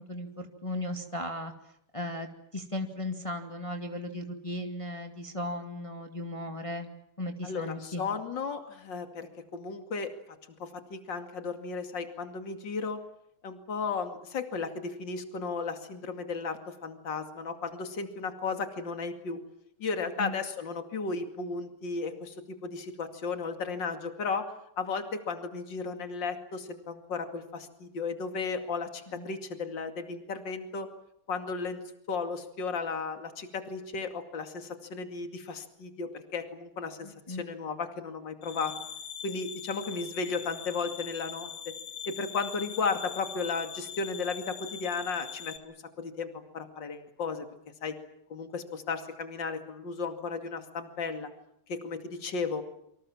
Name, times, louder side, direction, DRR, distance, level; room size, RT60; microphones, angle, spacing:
voice 1, 0.0-1.5 1.9-6.9 7.2-8.0 20.2-20.4 29.1-29.3 37.0-37.4, left 1 dB, 15° left, 4 dB, 2.2 m, -36 dB
voice 2, 7.4-10.1 10.6-13.0 13.4-19.4 19.8-24.5 24.8-30.9 31.3-31.8 32.1-38.7 39.2-41.7 42.1-47.5 47.8-48.0 48.3-51.3 51.7-52.6, left 4 dB, 55° left, 7 dB, 3.0 m, -34 dB
sound 1, 38.4-45.6, left 8 dB, 80° left, 2.6 m, -42 dB
27.5 x 25.5 x 7.4 m, 0.74 s
omnidirectional pair, 2.4 m